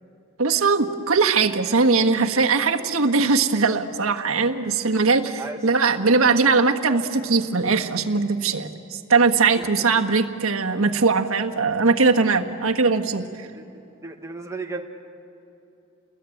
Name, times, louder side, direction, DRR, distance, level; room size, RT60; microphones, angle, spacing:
voice 1, 0.4-13.5, right 4 dB, 85° right, 4 dB, 1.5 m, -20 dB
voice 2, 9.5-9.9 13.5-13.6 14.0-14.8, right 3 dB, 15° right, 2 dB, 1.7 m, -34 dB
29.5 x 21.0 x 9.2 m, 2.8 s
head